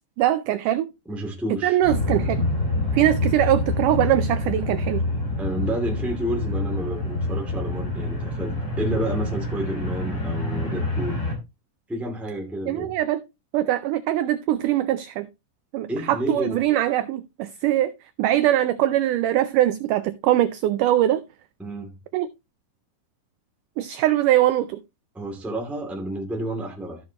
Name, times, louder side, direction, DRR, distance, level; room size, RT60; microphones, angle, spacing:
voice 1, 0.2-0.9 1.6-2.4 2.9-5.0 12.7-13.2 13.5-15.3 15.7-17.9 18.2-21.2 22.1-22.3 23.8-24.8, right 13 dB, 80° right, 1.9 m, -22 dB
voice 2, 1.0-1.8 5.4-11.2 11.9-12.9 15.9-16.6 21.6-21.9 25.1-27.0, right 1 dB, ahead, 1.4 m, -30 dB
sound 1, 1.8-11.3, left 2 dB, 35° left, 2.8 m, -27 dB
14.0 x 6.5 x 2.9 m
omnidirectional pair, 4.2 m